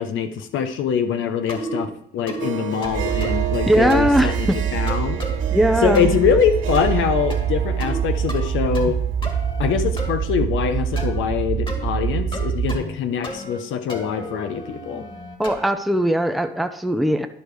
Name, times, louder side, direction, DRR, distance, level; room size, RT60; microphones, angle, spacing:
voice 1, 0.0-5.2 5.8-9.0 9.6-15.0, left 7 dB, 80° left, 8 dB, 0.9 m, -23 dB
sound 1, 1.5-1.9 2.3-2.5 2.8-3.5 3.9-4.2 4.9-5.4 5.9-6.3 6.7-7.0 7.3-8.0 8.3-8.9 9.2-10.1 11.0-11.2 11.7-11.9 12.3-13.0 13.2-13.6 13.9-15.7, left 1 dB, 25° left, 1.9 m, -33 dB
Harp, 2.4-9.9, right 11 dB, 80° right, 1.6 m, -33 dB
sound 2, 2.9-12.8, right 8 dB, 35° right, 0.4 m, -25 dB
voice 2, 3.7-4.6 5.5-6.1 15.4-17.3, right 1 dB, ahead, 8 dB, 0.6 m, -19 dB
11.0 x 5.0 x 4.7 m, 0.74 s
cardioid pair, 90°, 20 cm